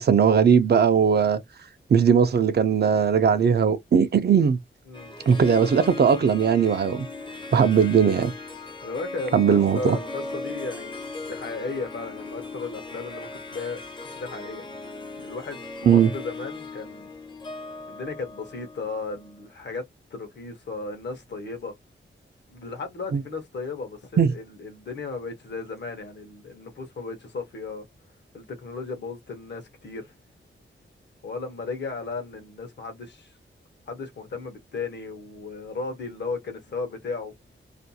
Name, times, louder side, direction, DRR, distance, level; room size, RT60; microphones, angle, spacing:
voice 1, 0.0-1.4 1.9-4.6 5.3-7.1 7.5-8.3 9.3-10.0 15.9-16.1 23.1-23.2 24.2-24.3, right 7 dB, 55° right, 0.4 m, -19 dB
Harp, 4.9-19.4, left 3 dB, 25° left, 0.5 m, -38 dB
voice 2, 8.8-11.0 11.2-14.9 15.2-17.1 17.9-19.9 20.1-21.7 22.5-27.9 28.3-30.1 31.2-33.4 33.9-37.3, left 4 dB, 60° left, 0.8 m, -35 dB
2.5 x 2.2 x 2.7 m
wide cardioid pair, 155°, 21 cm